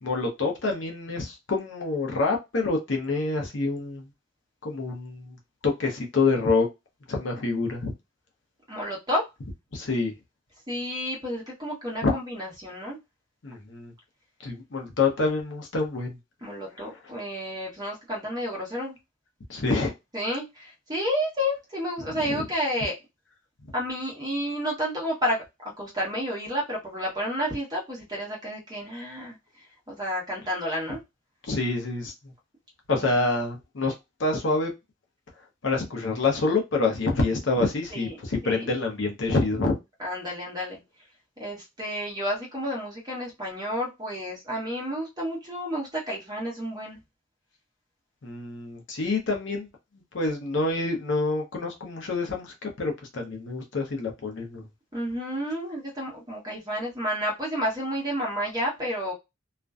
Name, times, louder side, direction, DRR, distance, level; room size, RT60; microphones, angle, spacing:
voice 1, 0.0-4.1 4.6-5.4 5.6-6.7 7.1-7.9 9.7-10.1 12.0-12.1 13.4-13.9 14.4-16.2 19.5-19.9 22.1-22.4 31.5-32.1 32.9-33.9 34.2-34.7 35.6-39.8 48.2-49.7 50.1-54.7, left 3 dB, 65° left, 0.7 m, -27 dB
voice 2, 8.7-9.2 10.7-13.0 16.4-19.0 20.1-22.9 23.7-25.4 25.8-31.0 32.9-33.2 37.9-38.1 38.4-38.7 40.0-40.8 41.4-47.0 54.9-59.1, equal, 20° right, 0.9 m, -31 dB
2.4 x 2.1 x 2.3 m
head